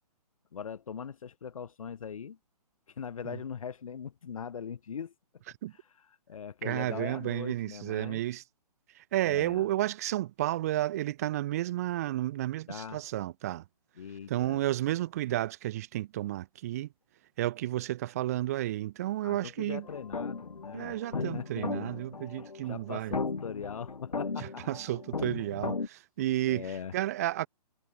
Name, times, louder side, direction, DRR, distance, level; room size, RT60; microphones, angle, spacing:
voice 1, 0.5-2.4 2.9-5.1 6.3-8.2 9.2-9.7 12.7-13.0 14.0-14.6 19.2-21.9 22.7-24.6 26.5-26.9, left 7 dB, 55° left, 1.0 m, -41 dB
voice 2, 6.6-8.4 9.0-13.6 14.3-16.9 17.4-19.9 20.7-23.2 24.4-27.5, right 14 dB, 25° right, 0.4 m, -32 dB
sound 1, 19.8-25.9, left 4 dB, 80° left, 0.8 m, -36 dB
figure-of-eight pair, 130°, 20 cm